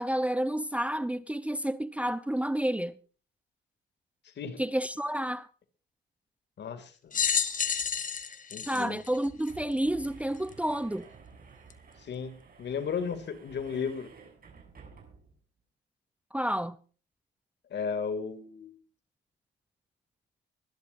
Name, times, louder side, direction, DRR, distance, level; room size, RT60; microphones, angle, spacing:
voice 1, 0.0-3.0 4.6-5.5 8.7-11.1 16.3-16.8, right 1 dB, 5° right, 0.8 m, -30 dB
voice 2, 6.6-7.2 8.5-9.0 12.0-14.1 17.7-18.7, left 6 dB, 60° left, 2.8 m, -35 dB
sound 1, 7.1-9.8 10.5-10.6 11.7-11.8, left 6 dB, 40° left, 1.7 m, -30 dB
sound 2, 7.8-7.9 8.2-8.3 9.0-15.4, right 5 dB, 50° right, 7.4 m, -53 dB
23.0 x 12.0 x 2.7 m
cardioid pair, 90°, 20 cm